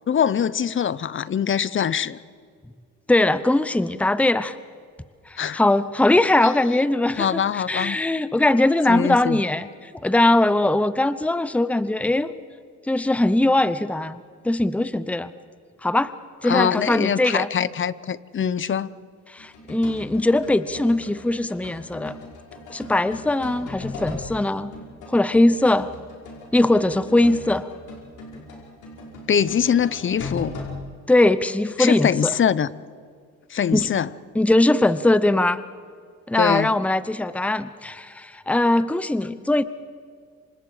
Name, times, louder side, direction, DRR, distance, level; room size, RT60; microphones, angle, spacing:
voice 1, 0.1-2.2 5.4-5.6 7.2-8.0 8.9-9.4 16.4-18.9 29.3-30.6 31.8-32.7 33.5-34.1 36.4-36.7, left 8 dB, 40° left, 18 dB, 0.8 m, -23 dB
voice 2, 3.1-4.6 5.3-12.3 12.9-15.3 15.8-16.1 16.4-17.5 19.3-22.2 22.7-24.7 25.1-25.9 26.5-27.7 31.1-32.3 33.7-33.9 34.3-35.6 36.3-39.6, left 2 dB, 5° left, 14 dB, 0.8 m, -21 dB
sound 1, 19.4-24.4 24.7-30.8, left 2 dB, 80° left, 5.3 m, -38 dB
28.0 x 25.5 x 5.0 m, 2.1 s
cardioid pair, 90°, 30 cm